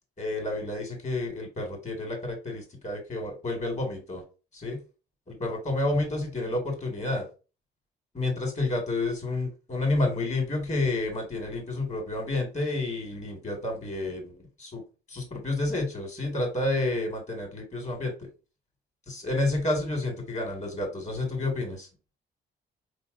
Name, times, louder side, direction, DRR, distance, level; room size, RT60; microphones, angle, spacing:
voice 1, 0.2-4.2 4.5-4.8 5.3-7.3 8.1-14.8 15.1-18.3 19.1-21.9, left 2 dB, 35° left, 2 dB, 1.7 m, -30 dB
4.4 x 2.8 x 2.5 m, 0.32 s
cardioid pair, 90°, 20 cm